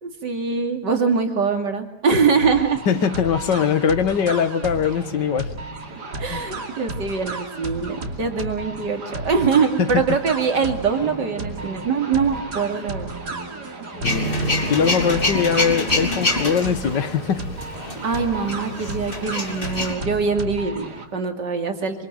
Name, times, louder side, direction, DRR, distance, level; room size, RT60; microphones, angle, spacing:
voice 1, 0.0-2.8 6.2-13.1 18.0-22.1, right 5 dB, 90° right, 5 dB, 3.3 m, -23 dB
sound 1, 2.4-21.1, right 2 dB, 70° right, 3.4 m, -33 dB
voice 2, 2.9-5.5 6.3-6.4 9.8-10.0 14.0-17.4, left 7 dB, 90° left, 12 dB, 2.1 m, -22 dB
sound 2, 10.3-16.6, right 1 dB, 10° right, 2.3 m, -39 dB
Male speech man speaking / Vehicle / Engine starting, 14.0-19.9, left 1 dB, 30° left, 3.6 m, -26 dB
26.0 x 25.5 x 9.0 m, 0.75 s
omnidirectional pair, 1.8 m